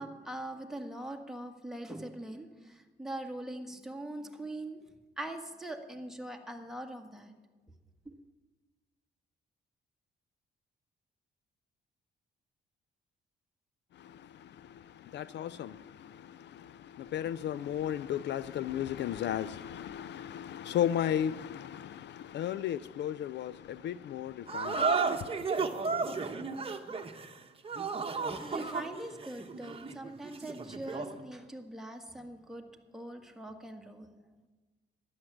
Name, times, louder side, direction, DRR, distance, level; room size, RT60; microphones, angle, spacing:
voice 1, 0.0-4.8 5.2-7.3 8.0-8.1 27.9-32.7 32.9-34.2, right 1 dB, ahead, 1.7 m, -42 dB
voice 2, 13.9-25.5, left 10 dB, 60° left, 0.4 m, -35 dB
sound 1, 24.5-31.2, right 4 dB, 30° right, 1.2 m, -33 dB
12.5 x 10.5 x 7.4 m
cardioid pair, 90°, 20 cm